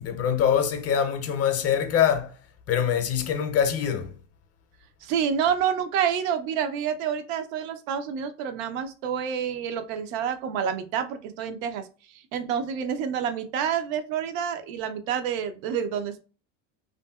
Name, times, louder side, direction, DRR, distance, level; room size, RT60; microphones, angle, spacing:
voice 1, 0.0-2.4 2.7-4.1, left 8 dB, 40° left, 0.5 m, -24 dB
voice 2, 5.0-16.2, right 8 dB, 75° right, 0.6 m, -28 dB
2.7 x 2.6 x 2.2 m
supercardioid pair, 110°, 39 cm